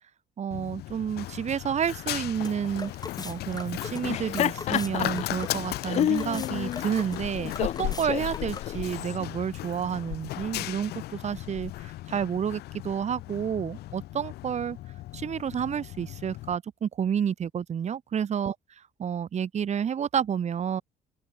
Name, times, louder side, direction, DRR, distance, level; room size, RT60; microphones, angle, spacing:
voice 1, 0.4-2.9 3.2-14.8 15.1-18.6 19.0-20.8, right 8 dB, 40° right, 2.0 m, -30 dB
Run, 0.5-16.6, left 16 dB, 70° left, 0.8 m, -37 dB
sound 1, 1.8-8.9, left 4 dB, 20° left, 7.3 m, -42 dB
Laughter, 3.9-9.2, left 11 dB, 40° left, 0.4 m, -30 dB
open air
cardioid pair, 110°, 17 cm